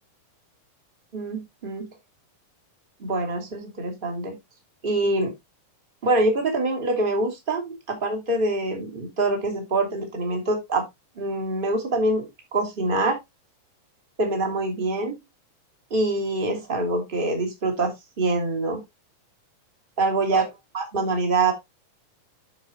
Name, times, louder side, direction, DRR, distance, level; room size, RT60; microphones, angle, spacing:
voice 1, 1.1-1.9 3.0-4.3 4.8-5.3 6.0-10.8 11.2-12.3 12.5-13.2 14.2-15.2 15.9-18.8 20.0-20.4 20.7-21.5, right 2 dB, 15° right, 3 dB, 2.7 m, -25 dB
9.2 x 7.4 x 3.2 m, 0.20 s
omnidirectional pair, 3.8 m